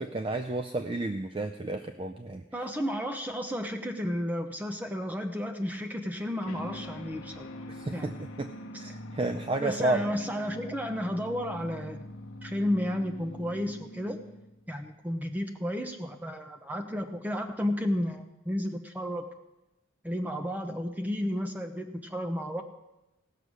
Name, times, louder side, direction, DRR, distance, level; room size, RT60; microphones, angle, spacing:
voice 1, 0.0-2.4 7.7-8.1 8.4-8.5 8.8-10.0, right 2 dB, 25° right, 7 dB, 0.4 m, -31 dB
voice 2, 2.5-7.5 7.9-8.1 8.7-8.9 9.6-12.0 12.4-14.2 14.7-19.3 20.0-22.6, equal, 10° right, 5 dB, 0.8 m, -32 dB
sound 1, 6.4-14.7, left 1 dB, 80° left, 1.0 m, -43 dB
17.0 x 6.7 x 6.2 m, 0.99 s
head